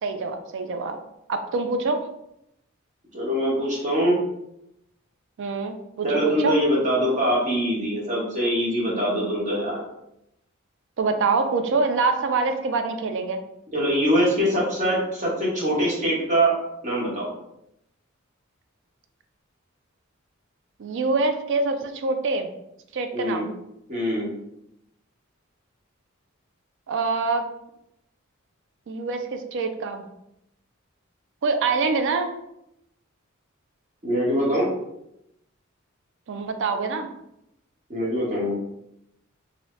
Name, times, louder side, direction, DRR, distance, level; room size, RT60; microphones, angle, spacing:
voice 1, 0.0-1.0 1.3-2.0 5.4-6.5 11.0-13.4 20.8-22.5 22.9-23.5 26.9-27.4 28.9-30.0 31.4-32.3 36.3-37.1, right 4 dB, 60° right, 7 dB, 0.4 m, -25 dB
voice 2, 3.1-4.2 6.0-9.8 13.7-16.5 16.8-17.3 23.1-23.5 23.9-24.3 34.0-34.7 37.9-38.6, equal, 35° right, -5 dB, 1.1 m, -23 dB
2.7 x 2.6 x 3.1 m, 0.82 s
head